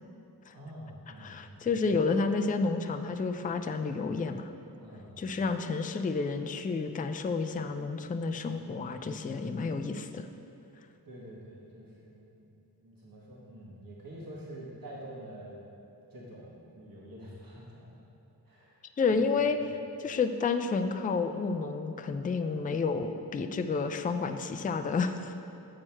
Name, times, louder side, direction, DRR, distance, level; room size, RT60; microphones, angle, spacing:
voice 1, 0.5-1.9 4.8-5.4 11.0-12.4 12.8-15.6 16.1-18.0 18.4-18.8, right 1 dB, 60° right, -5 dB, 1.4 m, -47 dB
voice 2, 1.2-4.5 5.2-10.3 19.0-25.3, left 4 dB, 25° left, 7 dB, 0.3 m, -30 dB
7.4 x 4.5 x 4.5 m, 2.8 s
cardioid pair, 55°, 39 cm